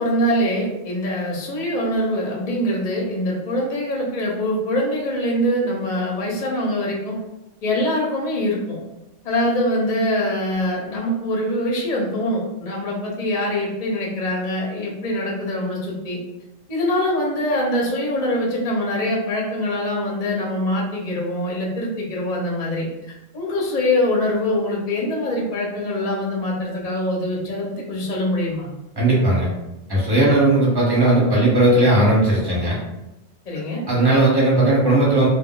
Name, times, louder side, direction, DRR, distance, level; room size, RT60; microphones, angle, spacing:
voice 1, 0.0-7.2 7.6-8.8 9.2-16.2 16.7-22.9 23.3-28.7 33.5-33.8, left 1 dB, 45° left, -3 dB, 0.6 m, -23 dB
voice 2, 29.0-29.5 29.9-32.8 33.9-35.3, right 2 dB, 20° right, -6 dB, 0.9 m, -17 dB
2.4 x 2.1 x 3.7 m, 0.94 s
omnidirectional pair, 1.3 m